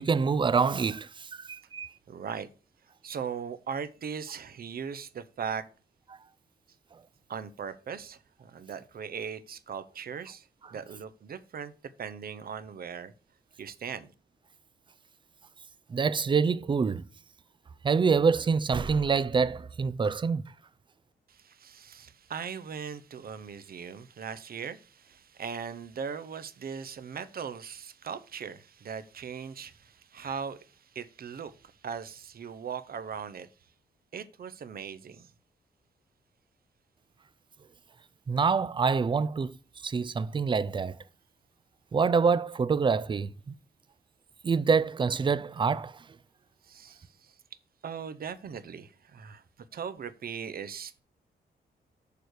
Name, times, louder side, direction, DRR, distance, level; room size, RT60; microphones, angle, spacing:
voice 1, 0.0-1.9 15.9-17.0 17.8-20.4 38.3-39.6 39.8-41.0 41.9-43.3 44.4-45.9, right 5 dB, 25° right, 0.4 m, -26 dB
voice 2, 2.1-2.5 3.0-5.7 7.3-11.7 12.0-13.1 13.6-14.1 21.3-33.5 34.1-35.3 46.6-47.4 47.8-49.4 49.7-51.0, right 7 dB, 55° right, 0.8 m, -39 dB
6.8 x 4.7 x 6.5 m
wide cardioid pair, 115°, 18 cm